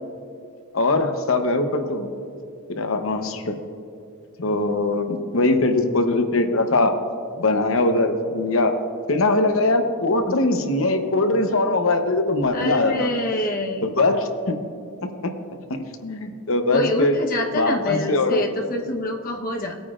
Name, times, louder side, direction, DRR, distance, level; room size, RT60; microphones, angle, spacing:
voice 1, 0.7-2.1 2.7-3.6 4.4-6.9 7.4-8.7 9.1-13.1 13.8-14.6 15.2-15.3 15.7-17.2 17.5-18.4, left 2 dB, 65° left, 6 dB, 0.9 m, -21 dB
voice 2, 12.5-13.9 15.3-15.4 16.7-19.8, left 1 dB, 40° left, 1 dB, 1.1 m, -26 dB
18.5 x 9.1 x 2.5 m, 2.4 s
head